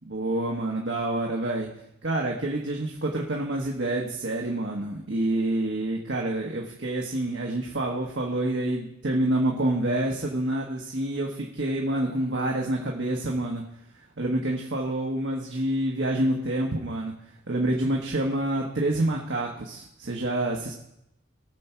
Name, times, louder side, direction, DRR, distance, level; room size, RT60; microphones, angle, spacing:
voice 1, 0.0-1.7 2.0-13.6 14.2-17.1 17.5-20.7, right 1 dB, 65° right, -1 dB, 1.3 m, -27 dB
18.0 x 7.0 x 4.5 m, 0.81 s
head